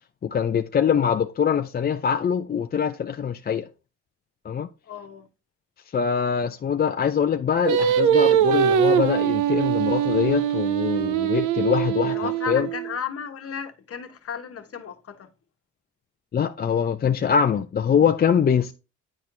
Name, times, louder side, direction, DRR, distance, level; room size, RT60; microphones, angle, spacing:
voice 1, 0.2-3.7 4.5-4.7 5.9-12.7 16.3-18.7, left 7 dB, 30° left, 0.4 m, -23 dB
voice 2, 4.9-5.3 12.0-15.3, left 7 dB, 50° left, 1.2 m, -34 dB
Singing, 7.7-12.9, right 9 dB, 85° right, 0.7 m, -22 dB
9.8 x 4.4 x 2.6 m
cardioid pair, 90°, 30 cm